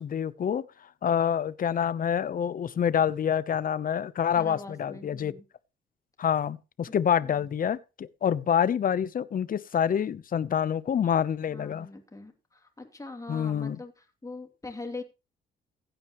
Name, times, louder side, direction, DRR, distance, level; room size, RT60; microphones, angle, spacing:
voice 1, 0.0-5.3 6.2-11.9 13.3-13.8, left 8 dB, 45° left, 0.7 m, -27 dB
voice 2, 4.4-5.4 7.2-7.5 11.5-13.9 14.2-15.0, left 3 dB, 15° left, 2.8 m, -42 dB
16.0 x 9.0 x 3.0 m
cardioid pair, 90°, 20 cm